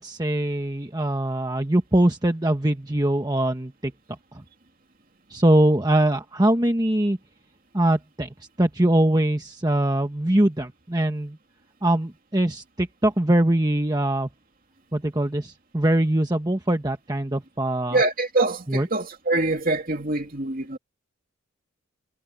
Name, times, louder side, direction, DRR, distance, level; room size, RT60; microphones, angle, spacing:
voice 1, 0.0-3.9 5.3-7.2 7.7-8.3 8.6-11.4 11.8-14.3 14.9-18.0 18.7-18.9, right 1 dB, 20° right, 1.2 m, -22 dB
voice 2, 17.9-20.8, right 2 dB, 40° right, 2.9 m, -24 dB
head